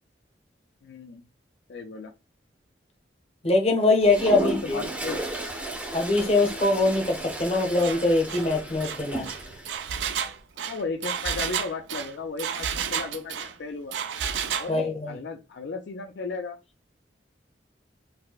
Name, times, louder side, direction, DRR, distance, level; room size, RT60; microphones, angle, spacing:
voice 1, 0.8-1.2 1.7-2.1 4.3-5.2 10.6-14.0 14.6-16.6, left 4 dB, 65° left, 0.4 m, -35 dB
voice 2, 3.4-4.8 5.9-9.3 14.7-15.2, left 2 dB, 35° left, 0.7 m, -23 dB
Toilet flush, 4.0-9.8, right 1 dB, 10° right, 0.5 m, -34 dB
Engine, 7.8-8.0 8.3-8.5 8.8-13.5 13.9-14.7, right 8 dB, 80° right, 0.4 m, -31 dB
4.1 x 2.1 x 2.3 m
head